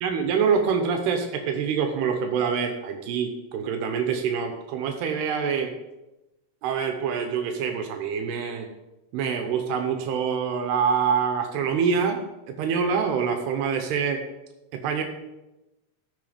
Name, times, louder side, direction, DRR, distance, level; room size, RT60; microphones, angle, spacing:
voice 1, 0.0-5.7 6.6-8.7 9.1-14.2 14.8-15.0, right 6 dB, 85° right, 5 dB, 3.0 m, -25 dB
14.5 x 6.7 x 5.1 m, 1.0 s
omnidirectional pair, 4.6 m